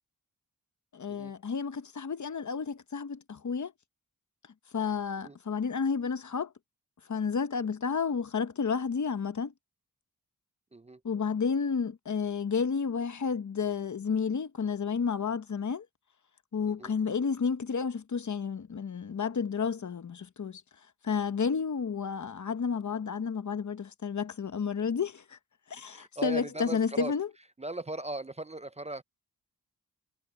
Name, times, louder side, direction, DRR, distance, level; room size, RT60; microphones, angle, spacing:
voice 1, 0.9-3.7 4.7-6.5 7.1-9.5 11.0-15.9 16.5-20.6 21.0-25.4 25.7-27.3, left 6 dB, 50° left, 1.0 m, -31 dB
voice 2, 25.9-27.1 27.6-29.0, right 1 dB, 20° right, 0.3 m, -38 dB
wide cardioid pair, 120°, 37 cm